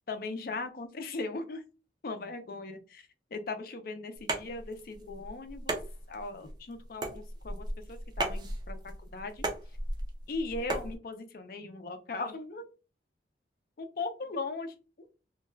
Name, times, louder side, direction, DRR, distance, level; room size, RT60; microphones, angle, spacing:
voice 1, 0.1-1.6 2.0-5.8 6.1-9.4 10.3-12.6 13.8-14.7, left 3 dB, 50° left, 7 dB, 0.4 m, -38 dB
sound 1, 4.2-10.9, right 2 dB, 25° right, 0.4 m, -36 dB
2.3 x 2.2 x 3.2 m, 0.33 s
head